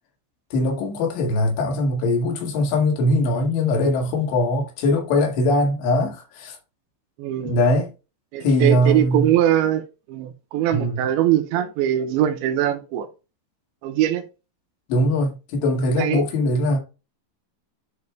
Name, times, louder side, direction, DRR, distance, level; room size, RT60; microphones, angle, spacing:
voice 1, 0.5-6.6 7.4-7.9 8.4-9.3 10.7-11.0 14.9-16.8, left 1 dB, 70° left, 4.0 m, -21 dB
voice 2, 7.2-7.6 8.3-13.1 13.8-14.2 16.0-16.2, right 12 dB, 80° right, 2.9 m, -22 dB
10.5 x 5.3 x 2.2 m
omnidirectional pair, 5.3 m